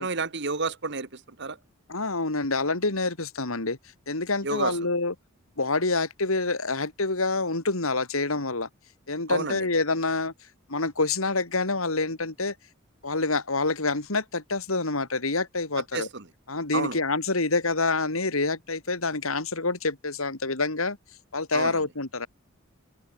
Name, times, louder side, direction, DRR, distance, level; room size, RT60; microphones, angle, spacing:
voice 1, 0.0-1.6 4.4-4.8 9.3-9.7 15.9-16.2 16.7-17.0 21.5-21.8, right 4 dB, 60° right, 1.9 m, -30 dB
voice 2, 1.9-3.8 4.1-5.1 5.6-8.7 9.1-10.3 10.7-12.5 13.0-16.1 16.5-21.0 21.3-22.3, left 3 dB, 90° left, 3.2 m, -27 dB
head